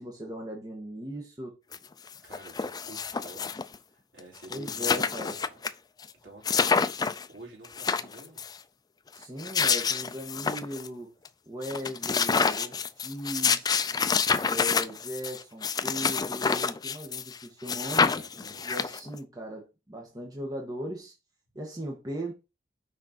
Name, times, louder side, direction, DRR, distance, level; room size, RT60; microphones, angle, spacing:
voice 1, 0.0-1.5 4.5-5.3 9.1-11.1 11.5-13.8 14.4-18.1 18.6-21.1 21.5-22.3, equal, 20° right, 1.4 m, -38 dB
sound 1, 1.7-1.8 2.1-3.8 4.2-4.3 4.4-5.7 6.0-6.1 6.5-7.3 7.6-8.5 9.2-10.9 11.3-11.4 11.6-17.4 17.7-19.2, left 5 dB, 20° left, 0.4 m, -28 dB
voice 2, 2.2-3.5 3.9-5.5 6.2-6.9 7.3-8.4 17.8-18.7, right 2 dB, 75° right, 3.7 m, -49 dB
6.4 x 4.4 x 4.4 m
head